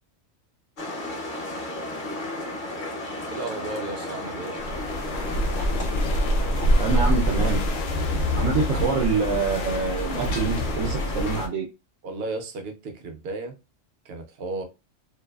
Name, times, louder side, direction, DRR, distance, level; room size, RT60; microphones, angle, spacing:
sound 1, 0.8-11.4, left 1 dB, 50° left, 0.7 m, -34 dB
voice 1, 3.3-4.6 12.0-13.6 14.0-14.6, right 2 dB, 60° right, 0.7 m, -34 dB
sound 2, 4.6-11.5, equal, 75° left, 0.9 m, -25 dB
voice 2, 6.8-7.6 8.3-11.7, right 4 dB, 85° right, 1.0 m, -26 dB
2.6 x 2.3 x 2.2 m
omnidirectional pair, 1.3 m